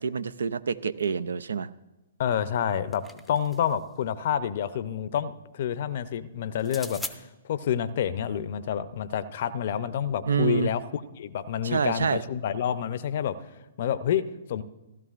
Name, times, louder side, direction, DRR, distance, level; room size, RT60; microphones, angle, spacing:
voice 1, 0.0-1.7 10.3-10.7 11.6-12.2, right 6 dB, 75° right, 15 dB, 0.4 m, -27 dB
voice 2, 2.2-13.4 13.8-14.2 14.5-14.6, left 9 dB, 55° left, 13 dB, 0.5 m, -28 dB
sound 1, 2.5-3.8 6.6-7.2, left 2 dB, ahead, 0.6 m, -40 dB
16.0 x 12.0 x 2.5 m, 1.0 s
hypercardioid pair, 125°, 0 cm